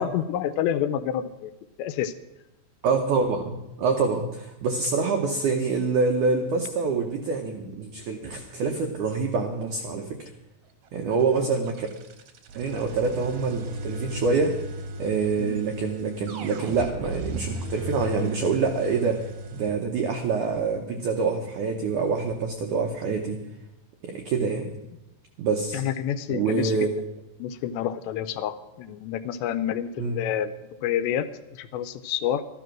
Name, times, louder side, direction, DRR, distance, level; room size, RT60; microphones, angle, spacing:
voice 1, 0.0-1.5 1.8-2.1 15.4-15.6 25.7-26.8 27.4-30.5 30.8-31.3 31.5-32.4, left 10 dB, 85° left, 11 dB, 2.8 m, -28 dB
voice 2, 2.8-10.3 10.9-11.9 12.5-14.6 15.0-19.3 19.5-23.4 24.0-24.7 25.4-25.8 26.3-26.9 30.0-30.2, right 4 dB, 85° right, 4 dB, 1.7 m, -26 dB
sound 1, 11.1-19.7, right 1 dB, 65° right, 1.9 m, -36 dB
13.0 x 12.0 x 6.1 m, 0.95 s
omnidirectional pair, 5.0 m